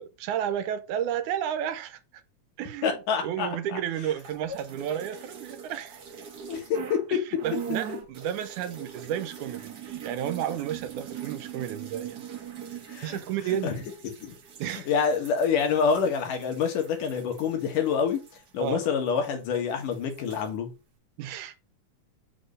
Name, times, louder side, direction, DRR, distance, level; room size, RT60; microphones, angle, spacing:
voice 1, 0.0-2.2 2.6-6.0 7.1-12.2 13.0-13.8 14.6-14.9 18.6-18.9 21.2-21.5, right 10 dB, 80° right, 2.2 m, -32 dB
voice 2, 2.8-3.8 6.5-7.2 12.9-13.2 13.6-13.7 14.0-14.3 14.9-18.2 18.5-20.7, left 6 dB, 90° left, 3.3 m, -27 dB
sound 1, 4.1-7.1 7.4-19.3 19.5-20.5, right 9 dB, 55° right, 1.1 m, -42 dB
6.5 x 4.2 x 6.4 m
omnidirectional pair, 3.6 m